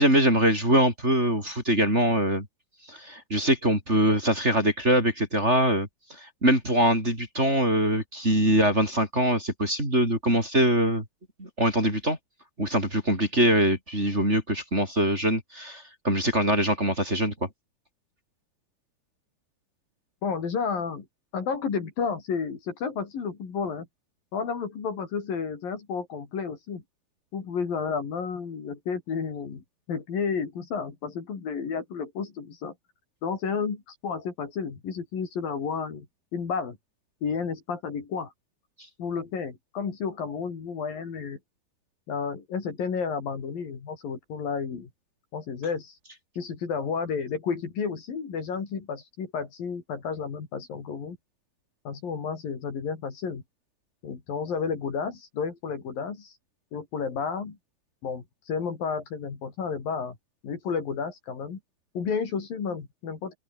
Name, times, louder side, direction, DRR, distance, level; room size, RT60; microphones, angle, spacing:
voice 1, 0.0-2.5 2.9-5.9 6.2-11.0 11.4-12.2 12.6-17.3, right 1 dB, 15° right, 6.3 m, -23 dB
voice 2, 20.2-21.1 21.3-23.9 24.3-26.8 27.3-32.7 33.2-36.1 36.3-36.8 37.2-38.3 39.0-41.4 42.1-44.9 45.3-46.0 46.4-51.2 51.9-53.4 54.0-56.3 56.7-57.6 58.0-60.2 60.4-61.6 62.0-63.4, left 6 dB, 60° left, 5.5 m, -31 dB
omnidirectional pair, 4.6 m